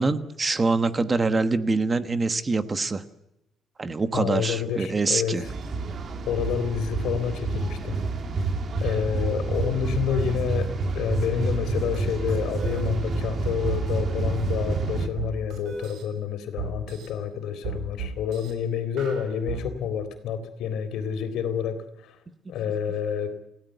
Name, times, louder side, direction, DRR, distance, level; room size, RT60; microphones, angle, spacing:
voice 1, 0.0-3.0 3.8-5.4, right 3 dB, 20° right, 11 dB, 1.2 m, -24 dB
voice 2, 4.1-5.5 6.3-8.0 8.8-22.2 22.5-23.4, left 7 dB, 80° left, 9 dB, 3.7 m, -28 dB
sound 1, 5.4-15.1, right 3 dB, 40° right, 2.5 m, -28 dB
sound 2, 11.9-12.0 12.3-12.8 13.7-13.8 14.8-16.0 16.6-17.1 17.6-18.5 19.0-19.6, right 7 dB, 70° right, 6.4 m, -34 dB
29.5 x 17.0 x 8.0 m, 0.86 s
cardioid pair, 170°, 0 cm